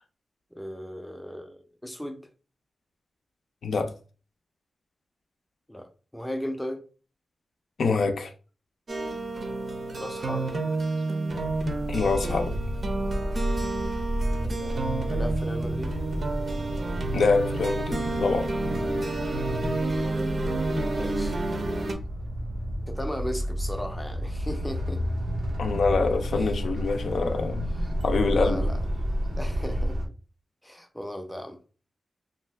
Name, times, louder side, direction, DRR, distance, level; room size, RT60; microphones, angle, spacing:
voice 1, 0.5-2.2 5.7-6.8 10.0-10.6 14.4-16.0 19.2-19.5 20.7-21.4 22.9-25.0 26.3-26.5 27.8-27.9 28.4-28.8 29.4-30.0 30.6-31.6, equal, 5° left, 0.4 m, -37 dB
voice 2, 3.6-3.9 7.8-8.3 11.9-12.5 17.1-18.5 25.6-27.7 28.0-28.7, left 4 dB, 80° left, 0.4 m, -25 dB
sound 1, 8.9-21.9, right 2 dB, 45° right, 0.5 m, -30 dB
sound 2, 11.3-30.1, equal, 85° right, 0.7 m, -31 dB
2.6 x 2.2 x 3.3 m
wide cardioid pair, 170°, 0 cm